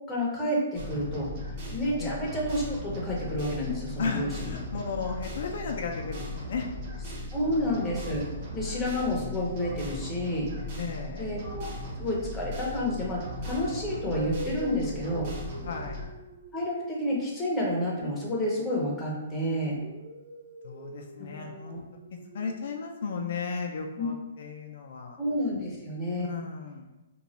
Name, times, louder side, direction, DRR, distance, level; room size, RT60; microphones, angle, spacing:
voice 1, 0.1-1.3 1.7-4.6 7.3-8.3 8.5-10.5 11.2-11.7 12.0-15.3 16.5-19.8 21.2-21.8 24.0-24.1 25.2-26.3, left 1 dB, 5° left, -5 dB, 0.6 m, -30 dB
sound 1, 0.7-16.1, equal, 30° right, 1.0 m, -38 dB
voice 2, 4.0-6.7 7.4-7.6 8.5-8.8 10.8-11.4 15.6-16.0 20.6-21.8 22.3-25.2 26.2-26.9, left 5 dB, 55° left, 2 dB, 0.4 m, -35 dB
sound 2, 13.8-19.1 19.5-23.5, right 2 dB, 60° right, 0.7 m, -44 dB
2.9 x 2.3 x 4.0 m, 1.1 s
hypercardioid pair, 165°, 0 cm